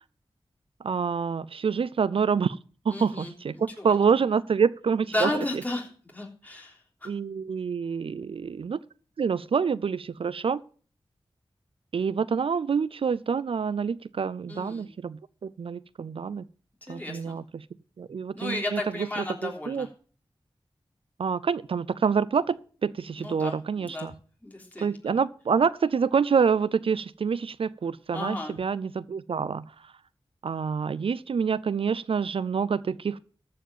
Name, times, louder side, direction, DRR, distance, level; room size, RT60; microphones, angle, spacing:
voice 1, 0.8-2.6 2.9-5.3 7.0-8.8 9.2-10.6 11.9-16.4 16.9-17.7 18.0-18.8 19.4-19.9 21.2-24.1 24.8-29.9 30.4-33.2, right 6 dB, 65° right, 18 dB, 0.4 m, -27 dB
voice 2, 2.9-3.9 5.1-7.1 14.5-14.9 16.8-17.3 18.3-19.9 23.2-24.1 24.4-24.9 28.1-28.5, left 1 dB, 15° left, -1 dB, 3.5 m, -34 dB
13.5 x 5.1 x 7.3 m, 0.42 s
wide cardioid pair, 65°, 10 cm